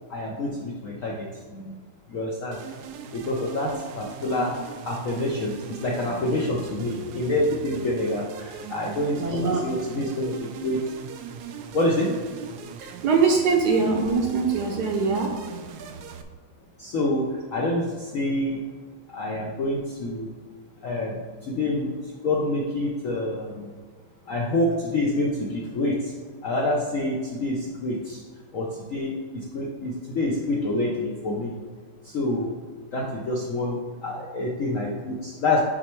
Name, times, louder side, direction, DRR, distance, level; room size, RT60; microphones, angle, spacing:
voice 1, 0.1-1.1 1.5-1.8 2.1-2.6 3.1-4.5 4.8-10.8 11.7-12.1 16.8-18.6 19.1-20.3 20.8-21.9 22.2-23.7 24.3-26.1 26.4-28.2 28.5-31.5 32.0-32.5 32.9-35.6, left 1 dB, 65° left, -2 dB, 0.8 m, -27 dB
sound 1, 2.5-16.2, right 7 dB, 80° right, 0.9 m, -40 dB
voice 2, 9.2-9.6 12.8-15.4, right 4 dB, 65° right, 1 dB, 1.1 m, -22 dB
6.5 x 4.2 x 4.5 m, 1.5 s
omnidirectional pair, 2.3 m